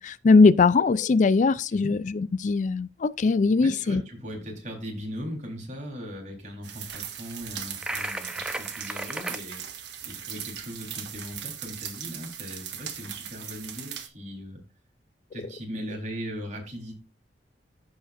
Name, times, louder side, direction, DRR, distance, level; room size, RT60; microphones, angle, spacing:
voice 1, 0.0-4.0, left 4 dB, 45° left, 0.4 m, -20 dB
voice 2, 3.6-9.6 10.1-14.6 15.3-16.9, equal, 45° right, 3.8 m, -38 dB
sound 1, 6.6-14.1, right 9 dB, 85° right, 1.5 m, -39 dB
sound 2, 7.8-9.4, right 1 dB, 5° right, 0.8 m, -34 dB
15.0 x 5.0 x 2.5 m
head